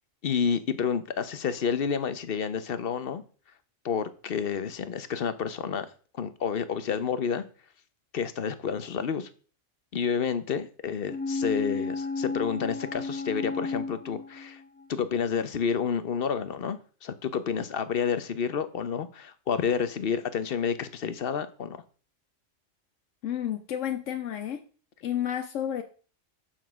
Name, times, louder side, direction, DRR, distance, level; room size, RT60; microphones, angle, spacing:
voice 1, 0.2-3.2 3.8-5.9 6.1-7.4 8.1-9.3 9.9-14.6 14.9-21.8, left 6 dB, 55° left, 0.9 m, -29 dB
sound 1, 11.1-14.8 15.2-15.3, left 3 dB, 10° left, 0.5 m, -33 dB
voice 2, 23.2-24.6 25.0-25.8, left 10 dB, 80° left, 1.1 m, -31 dB
7.0 x 5.9 x 6.1 m
omnidirectional pair, 1.3 m